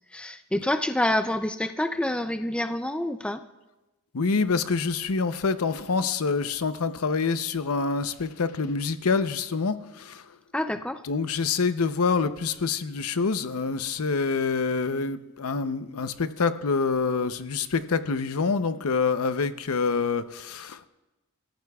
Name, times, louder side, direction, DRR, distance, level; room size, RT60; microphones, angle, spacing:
voice 1, 0.1-3.4 10.5-11.0, left 1 dB, 5° left, 8 dB, 0.4 m, -27 dB
voice 2, 4.1-10.4 11.0-20.9, left 4 dB, 75° left, 11 dB, 0.7 m, -26 dB
28.0 x 14.5 x 2.3 m, 1.1 s
head